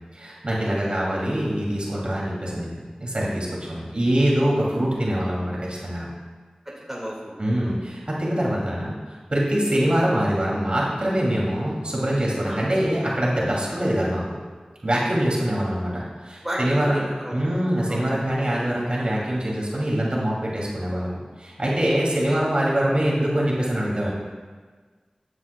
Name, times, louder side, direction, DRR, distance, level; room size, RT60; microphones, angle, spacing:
voice 1, 0.1-2.8 3.0-6.1 7.4-9.0 9.3-14.2 14.8-17.0 17.3-24.1, right 1 dB, 50° right, -5 dB, 2.7 m, -24 dB
voice 2, 6.7-7.4 7.6-7.7 12.4-12.6 16.4-17.4 17.9-18.0 22.2-22.4, equal, 15° right, -5 dB, 2.0 m, -32 dB
14.0 x 9.6 x 2.3 m, 1.5 s
wide cardioid pair, 50°, 2 cm